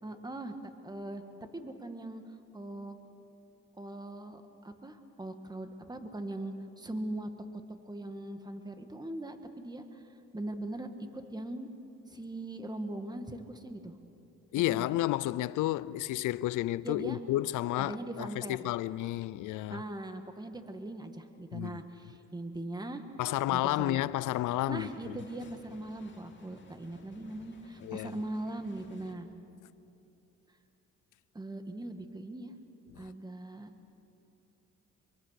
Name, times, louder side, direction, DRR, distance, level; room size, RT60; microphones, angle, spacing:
voice 1, 0.0-0.6 0.8-1.2 1.5-2.2 2.5-3.0 3.8-7.6 7.9-10.0 10.3-11.7 12.1-14.0 14.7-14.9 16.8-17.2 17.8-18.7 19.7-23.0 23.5-24.0 24.7-29.3 31.3-32.5 33.0-33.7, right 1 dB, 15° right, 1.7 m, -40 dB
voice 2, 14.5-19.8 21.5-21.8 23.2-25.2 27.8-28.1, left 15 dB, 85° left, 0.6 m, -31 dB
sound 1, 24.1-29.1, left 4 dB, 40° left, 2.7 m, -58 dB
24.5 x 23.5 x 6.6 m
cardioid pair, 90°, 30 cm